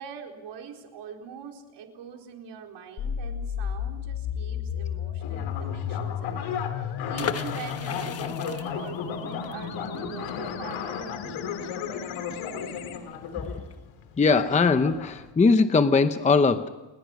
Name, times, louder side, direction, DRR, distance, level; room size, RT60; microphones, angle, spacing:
voice 1, 0.0-11.9, right 7 dB, 60° right, 2 dB, 4.4 m, -43 dB
sound 1, 3.0-13.0, left 8 dB, 70° left, 2.7 m, -34 dB
sound 2, 5.2-15.3, left 7 dB, 90° left, 3.2 m, -36 dB
sound 3, 7.1-12.8 13.1-13.2 13.4-13.7, left 7 dB, 30° left, 1.1 m, -37 dB
voice 2, 14.2-16.7, left 4 dB, 15° left, 10 dB, 0.8 m, -20 dB
29.0 x 21.0 x 6.1 m, 1.1 s
cardioid pair, 160°, 46 cm